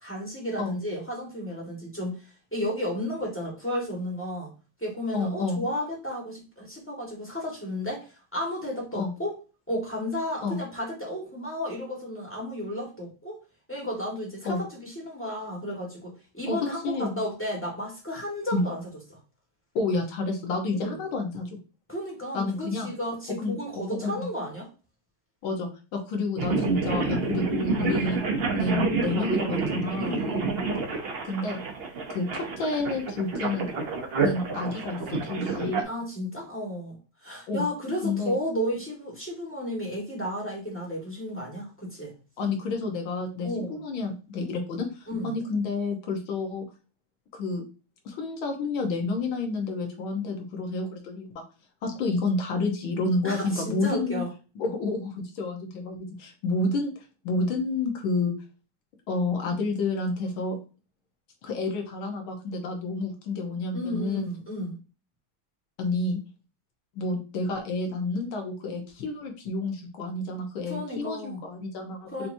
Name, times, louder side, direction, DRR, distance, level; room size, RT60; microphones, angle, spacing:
voice 1, 0.0-4.5 4.8-9.3 9.7-13.4 13.7-18.8 19.1-19.2 20.7-21.0 21.9-24.7 26.7-27.0 30.0-30.6 35.8-42.1 43.4-43.7 45.1-45.3 53.2-54.3 63.7-64.7 70.7-71.4 72.1-72.3, equal, 5° left, -3 dB, 1.3 m, -33 dB
voice 2, 5.1-5.7 8.9-9.1 10.4-10.6 14.5-14.6 16.5-16.6 16.8-17.2 18.5-18.6 19.8-21.5 22.3-23.0 23.4-24.3 25.4-28.2 28.5-30.2 31.2-31.6 32.1-33.7 34.2-35.9 37.5-37.7 38.0-38.4 42.4-46.7 47.3-47.6 48.1-51.4 51.8-54.2 54.6-56.9 57.2-58.3 59.1-60.6 61.4-64.3 65.8-66.2 67.0-72.3, left 3 dB, 75° left, 3 dB, 1.8 m, -29 dB
sound 1, 26.4-35.8, right 4 dB, 85° right, 0.5 m, -28 dB
5.9 x 2.9 x 2.6 m, 0.33 s
omnidirectional pair, 2.3 m